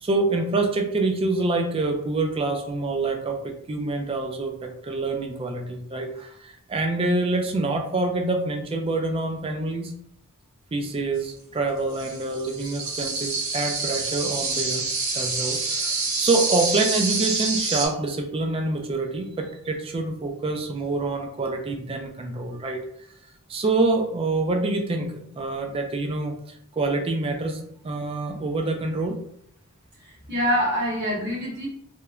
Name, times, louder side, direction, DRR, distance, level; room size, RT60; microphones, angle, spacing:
voice 1, 0.0-9.9 10.7-22.8 23.5-26.4 26.7-29.2, right 2 dB, 25° right, 4 dB, 0.3 m, -26 dB
sound 1, 11.9-17.9, right 3 dB, 80° right, 0.8 m, -27 dB
voice 2, 30.0-31.7, equal, 50° right, -3 dB, 1.0 m, -25 dB
2.9 x 2.1 x 2.3 m, 0.73 s
head